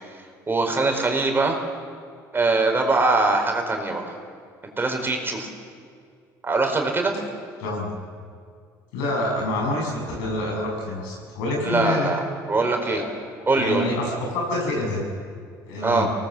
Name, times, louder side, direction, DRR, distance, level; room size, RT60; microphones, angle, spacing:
voice 1, 0.5-1.6 2.3-4.1 4.8-5.5 6.4-7.1 11.6-12.2 12.5-13.0 13.5-13.8 15.8-16.1, right 3 dB, 25° right, 3 dB, 4.8 m, -22 dB
voice 2, 7.6-8.0 8.9-12.1 12.8-13.0 13.6-15.1 15.7-16.1, left 1 dB, 80° left, 0 dB, 7.4 m, -27 dB
24.5 x 19.0 x 7.5 m, 2.2 s
hypercardioid pair, 70°, 9 cm